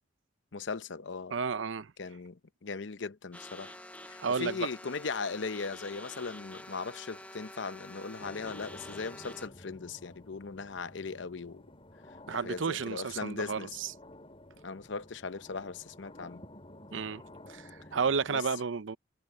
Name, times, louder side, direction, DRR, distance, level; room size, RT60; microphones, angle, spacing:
voice 1, 0.5-1.3 2.0-3.7 4.1-11.7 12.3-13.7 14.6-16.4 18.3-18.4, left 4 dB, 70° left, 0.8 m, -38 dB
voice 2, 1.3-1.9 4.2-4.7 12.3-13.9 16.9-17.2 17.5-19.0, right 5 dB, 80° right, 0.7 m, -32 dB
sound 1, 3.3-9.5, left 1 dB, 10° left, 1.0 m, -48 dB
sound 2, 8.2-18.3, left 1 dB, 30° left, 5.1 m, -52 dB
head